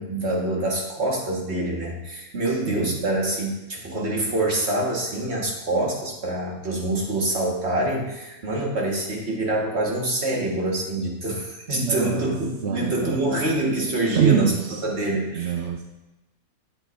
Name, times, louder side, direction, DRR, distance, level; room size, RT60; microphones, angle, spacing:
voice 1, 0.0-15.6, right 1 dB, 45° right, -2 dB, 1.8 m, -26 dB
voice 2, 11.7-12.4 12.6-13.5 14.1-14.8 15.3-15.8, right 8 dB, 60° right, 3 dB, 0.8 m, -25 dB
12.0 x 7.5 x 2.6 m, 1.0 s
omnidirectional pair, 1.6 m